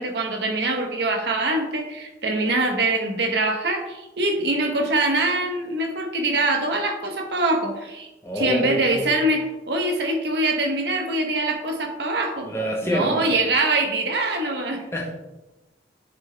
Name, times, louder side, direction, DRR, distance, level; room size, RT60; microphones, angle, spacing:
voice 1, 0.0-8.1 8.4-12.5 12.8-14.8, right 2 dB, 70° right, 3 dB, 1.0 m, -24 dB
voice 2, 8.2-9.1 12.4-13.3 14.9-15.1, equal, 15° left, -1 dB, 1.1 m, -26 dB
7.9 x 3.6 x 3.4 m, 0.99 s
head